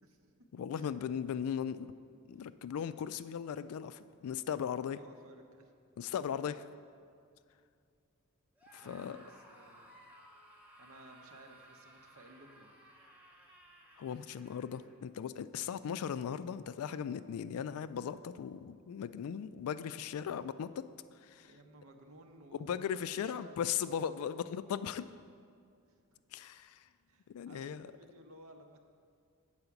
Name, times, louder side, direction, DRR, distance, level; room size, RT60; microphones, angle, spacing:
voice 1, 0.0-0.9 4.8-5.7 8.8-10.0 10.8-12.7 21.4-24.3 25.9-26.2 27.1-28.8, right 1 dB, 65° right, 5 dB, 0.8 m, -57 dB
voice 2, 0.5-1.9 2.3-5.0 6.0-6.7 8.7-9.2 14.0-20.9 21.2-21.5 22.6-25.1 26.3-26.9 27.3-27.9, left 8 dB, 70° left, 14 dB, 0.3 m, -38 dB
Screaming, 8.6-15.0, right 1 dB, 5° right, 0.7 m, -59 dB
7.9 x 4.8 x 7.0 m, 2.3 s
head